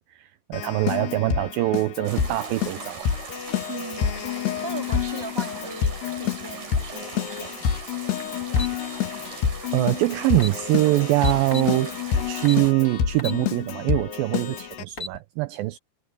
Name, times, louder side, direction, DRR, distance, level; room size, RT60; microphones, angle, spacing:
voice 1, 0.0-3.1 9.5-12.0 12.3-15.8, right 18 dB, 80° right, 2.2 m, -24 dB
Keyboard (musical), 0.5-14.8, left 8 dB, 85° left, 4.0 m, -28 dB
sound 1, 2.0-12.7, right 4 dB, 65° right, 8.0 m, -40 dB
voice 2, 3.7-4.2 4.6-7.6, right 4 dB, 5° right, 2.3 m, -38 dB
sound 2, 8.6-8.8 10.0-10.1 10.3-10.6 11.2-11.7 12.4-12.7 13.2-13.4 13.9-14.0 14.7-15.2, left 3 dB, 30° left, 1.5 m, -33 dB
omnidirectional pair, 4.6 m